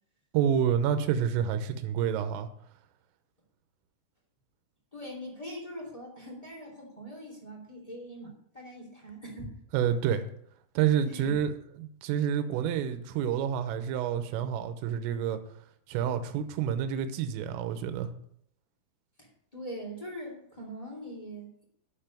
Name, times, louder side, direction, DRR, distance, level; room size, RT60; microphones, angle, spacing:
voice 1, 0.3-2.5 9.7-10.3 10.8-11.5 11.8-15.4 15.9-18.1, right 8 dB, 85° right, 9 dB, 3.4 m, -28 dB
voice 2, 4.9-9.6 11.0-11.4 19.2-21.6, equal, 25° left, -2 dB, 0.8 m, -42 dB
11.5 x 6.9 x 7.4 m, 0.69 s
omnidirectional pair, 5.9 m